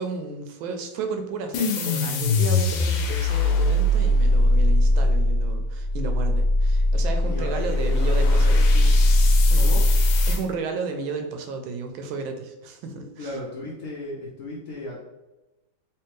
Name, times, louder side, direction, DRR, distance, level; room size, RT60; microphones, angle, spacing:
voice 1, 0.0-8.6 9.5-9.7 10.3-13.4, right 5 dB, 85° right, 5 dB, 1.4 m, -33 dB
sound 1, 1.5-10.4, left 1 dB, 80° left, 1.3 m, -20 dB
voice 2, 7.3-8.9 9.5-9.9 13.2-15.0, left 1 dB, 65° left, -5 dB, 0.8 m, -35 dB
3.3 x 3.1 x 3.1 m, 1.0 s
omnidirectional pair, 2.2 m